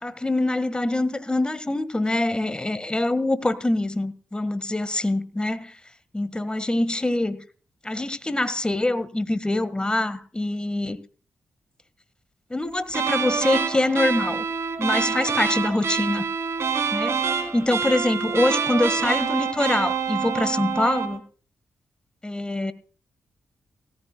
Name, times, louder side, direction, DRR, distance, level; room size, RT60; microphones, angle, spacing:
voice 1, 0.0-5.8 6.1-7.4 7.8-11.0 12.5-14.4 14.8-16.3 16.9-21.2 22.2-22.7, left 1 dB, 20° left, 1.6 m, -24 dB
sound 1, 12.9-21.2, right 6 dB, 60° right, 3.4 m, -26 dB
17.5 x 15.0 x 2.3 m
supercardioid pair, 50°, 5 cm